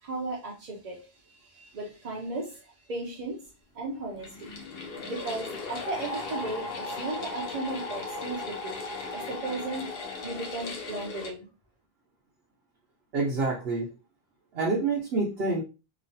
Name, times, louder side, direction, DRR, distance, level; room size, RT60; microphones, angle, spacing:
voice 1, 0.0-3.4 3.7-4.5 5.1-8.8 9.1-11.5, right 2 dB, 50° right, -2 dB, 0.6 m, -36 dB
sound 1, 4.1-11.3, left 3 dB, 70° left, 0.9 m, -37 dB
voice 2, 13.1-13.9 14.5-15.6, right 3 dB, 75° right, -3 dB, 1.0 m, -27 dB
3.0 x 2.4 x 2.6 m, 0.31 s
omnidirectional pair, 1.0 m